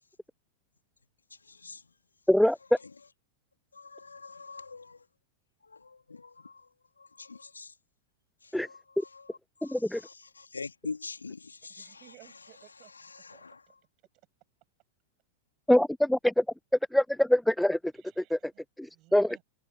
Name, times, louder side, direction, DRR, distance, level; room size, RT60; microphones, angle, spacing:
voice 1, 1.4-1.8 3.7-5.0 5.7-6.7 7.0-7.7 8.4-12.1 13.1-13.6, left 4 dB, 75° left, 2.0 m, -44 dB
voice 2, 9.7-10.0 15.7-16.4 16.9-17.8 18.2-18.4 18.8-19.3, left 1 dB, ahead, 0.4 m, -24 dB
voice 3, 11.7-12.9 13.3-13.7 17.9-19.4, right 22 dB, 40° right, 7.4 m, -58 dB
open air
figure-of-eight pair, 90°, 0 cm